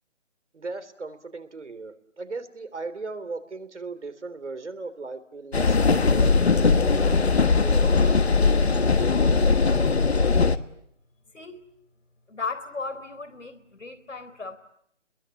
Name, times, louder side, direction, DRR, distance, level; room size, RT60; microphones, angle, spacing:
voice 1, 0.5-8.3, right 3 dB, 70° right, 10 dB, 3.5 m, -38 dB
sound 1, 5.5-10.6, left 4 dB, 60° left, 1.4 m, -20 dB
voice 2, 12.3-14.6, left 4 dB, 85° left, 11 dB, 4.1 m, -35 dB
29.5 x 22.0 x 8.8 m, 0.74 s
hypercardioid pair, 175°, 36 cm